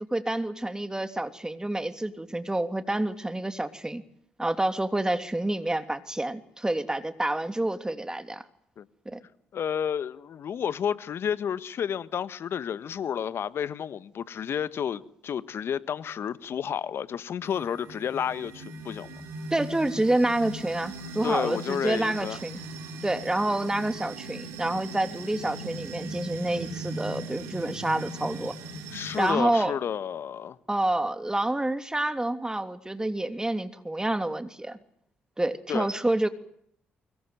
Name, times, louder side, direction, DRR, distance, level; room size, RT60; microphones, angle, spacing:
voice 1, 0.1-4.0 4.4-8.4 9.0-9.2 19.5-22.6 23.0-28.5 29.1-29.8 30.7-34.8 35.4-36.3, right 1 dB, 15° right, 3.0 m, -28 dB
voice 2, 9.5-19.1 21.2-22.4 28.9-30.6 35.7-35.9, left 8 dB, 60° left, 1.5 m, -31 dB
sound 1, 17.4-29.3, right 2 dB, 75° right, 6.3 m, -39 dB
24.5 x 22.5 x 9.2 m
hypercardioid pair, 45°, 5 cm